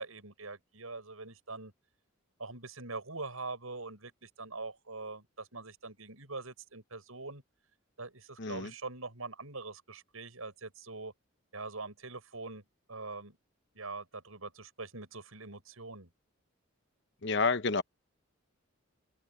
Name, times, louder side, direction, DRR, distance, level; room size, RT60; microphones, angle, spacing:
voice 1, 0.0-1.7 2.4-7.4 8.0-11.1 11.5-12.6 12.9-13.4 13.7-16.1, right 3 dB, 90° right, 6.5 m, -43 dB
voice 2, 8.4-8.7 17.2-17.8, left 4 dB, 55° left, 0.9 m, -29 dB
head